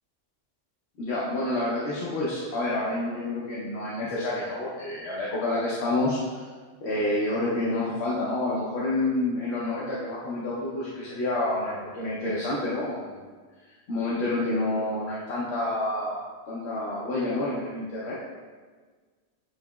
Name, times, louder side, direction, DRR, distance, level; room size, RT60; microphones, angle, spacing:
voice 1, 1.0-6.5 6.8-13.2 13.9-18.2, left 2 dB, 65° left, -7 dB, 1.0 m, -28 dB
7.6 x 2.9 x 2.3 m, 1.5 s
omnidirectional pair, 1.2 m